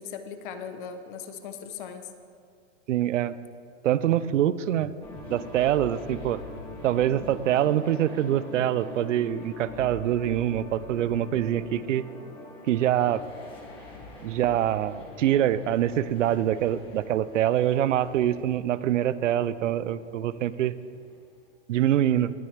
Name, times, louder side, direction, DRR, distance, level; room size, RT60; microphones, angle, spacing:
voice 1, 0.0-2.1, left 7 dB, 45° left, 9 dB, 1.0 m, -38 dB
voice 2, 2.9-3.3 3.8-4.9 5.3-6.4 6.8-12.0 12.7-13.2 14.2-20.7 21.7-22.3, right 11 dB, 80° right, 15 dB, 0.7 m, -25 dB
sound 1, 5.0-21.4, left 3 dB, 15° left, 2.3 m, -44 dB
19.0 x 10.5 x 3.4 m, 2.3 s
hypercardioid pair, 155°, 37 cm